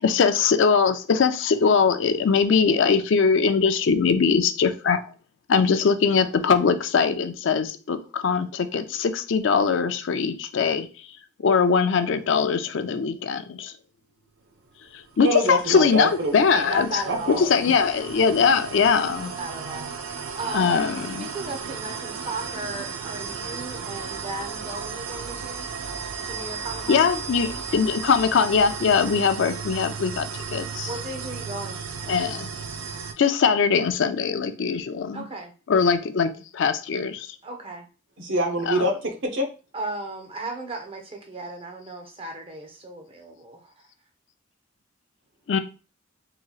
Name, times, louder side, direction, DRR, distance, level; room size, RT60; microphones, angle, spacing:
voice 1, 0.0-5.1 5.5-10.9 11.4-13.7 14.9-17.0 17.4-19.3 20.5-21.3 26.9-30.9 32.1-32.5 33.2-35.2 35.7-37.4 38.7-38.8 45.5-45.6, left 5 dB, 65° left, 9 dB, 0.4 m, -21 dB
sound 1, 15.1-33.1, right 5 dB, 85° right, 0.4 m, -35 dB
voice 2, 15.2-16.6 17.1-17.5 38.2-39.5, equal, 65° right, 2 dB, 0.8 m, -25 dB
voice 3, 16.7-17.5 19.2-19.9 20.4-20.8 21.2-25.7 26.2-27.1 30.9-31.8 35.1-35.5 37.4-37.9 39.7-43.7, right 2 dB, 25° right, 3 dB, 0.6 m, -35 dB
3.9 x 2.9 x 2.4 m, 0.35 s
head